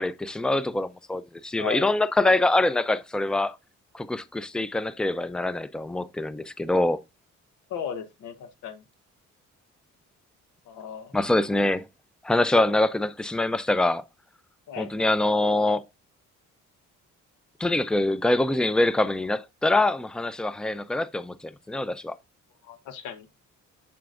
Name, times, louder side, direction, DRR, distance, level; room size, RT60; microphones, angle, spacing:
voice 1, 0.0-3.6 3.9-7.0 11.1-11.8 12.2-14.0 14.8-15.8 17.6-22.1, left 2 dB, 5° left, 0.5 m, -24 dB
voice 2, 1.6-1.9 7.7-8.8 10.7-11.1 14.7-14.9 22.6-23.3, left 7 dB, 85° left, 1.1 m, -36 dB
7.4 x 5.9 x 2.5 m
cardioid pair, 90°, 30 cm